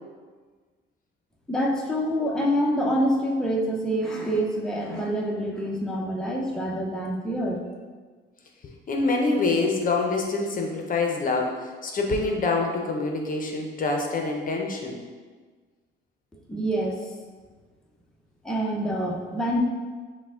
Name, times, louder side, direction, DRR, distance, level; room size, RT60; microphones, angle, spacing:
voice 1, 1.5-7.6 16.5-17.0 18.4-19.6, equal, 5° left, -2 dB, 0.6 m, -26 dB
voice 2, 8.9-15.0, left 3 dB, 45° left, 1 dB, 0.6 m, -26 dB
5.7 x 2.1 x 3.6 m, 1.4 s
cardioid pair, 90°, 20 cm